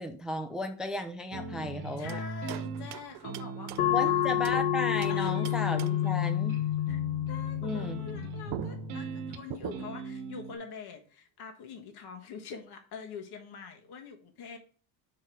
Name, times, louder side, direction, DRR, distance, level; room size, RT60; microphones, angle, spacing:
voice 1, 0.0-2.2 3.9-6.6 7.6-8.1, left 2 dB, ahead, 7 dB, 0.4 m, -34 dB
sound 1, 1.3-10.5, right 4 dB, 75° right, 1.1 m, -41 dB
voice 2, 2.0-4.3 5.1-5.3 6.9-7.0 7.3-14.6, left 5 dB, 50° left, 4 dB, 1.5 m, -44 dB
sound 2, 2.1-4.7 5.0-6.2 8.1-8.2 8.5-10.1, right 13 dB, 55° right, 0.5 m, -43 dB
sound 3, 3.8-8.9, left 11 dB, 85° left, 0.7 m, -29 dB
5.0 x 4.6 x 4.9 m, 0.40 s
cardioid pair, 130°, 48 cm